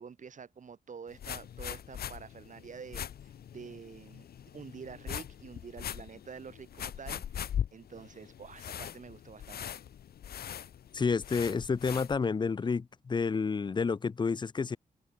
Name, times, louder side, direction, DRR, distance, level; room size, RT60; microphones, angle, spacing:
voice 1, 0.0-9.8, right 6 dB, 55° right, 4.5 m, -48 dB
sound 1, 1.1-12.2, left 9 dB, 90° left, 1.7 m, -41 dB
voice 2, 10.9-14.8, left 5 dB, 30° left, 0.5 m, -30 dB
wide cardioid pair, 110°, 16 cm